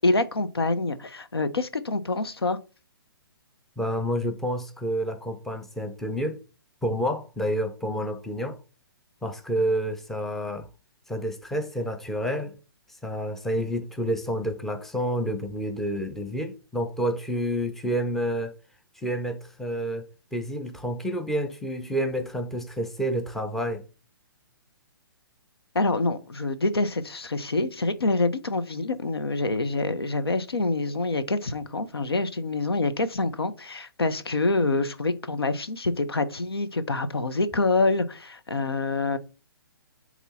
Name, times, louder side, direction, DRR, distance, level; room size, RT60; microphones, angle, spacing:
voice 1, 0.0-2.6 25.7-39.2, left 3 dB, 80° left, 0.9 m, -26 dB
voice 2, 3.8-6.4 6.8-8.6 9.2-10.7 11.1-12.5 12.9-18.5 19.0-23.8, equal, ahead, 0.6 m, -29 dB
8.0 x 3.0 x 4.1 m
figure-of-eight pair, 130°, 13 cm